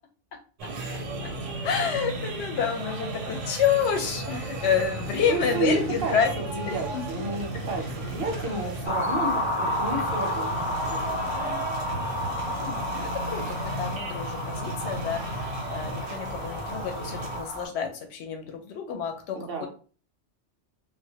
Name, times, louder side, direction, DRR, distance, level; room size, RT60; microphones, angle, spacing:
sound 1, 0.6-17.4, right 2 dB, 85° right, 0.9 m, -35 dB
voice 1, 1.6-6.3 6.7-6.9 7.1-7.3 12.5-19.4, left 7 dB, 70° left, 4 dB, 0.8 m, -29 dB
sound 2, 3.7-12.6, left 1 dB, 90° left, 0.9 m, -42 dB
voice 2, 5.3-11.2 19.3-19.7, right 3 dB, 60° right, 2 dB, 0.7 m, -31 dB
sound 3, 8.9-17.7, left 1 dB, 30° left, 0.8 m, -31 dB
2.1 x 2.1 x 2.7 m, 0.39 s
omnidirectional pair, 1.3 m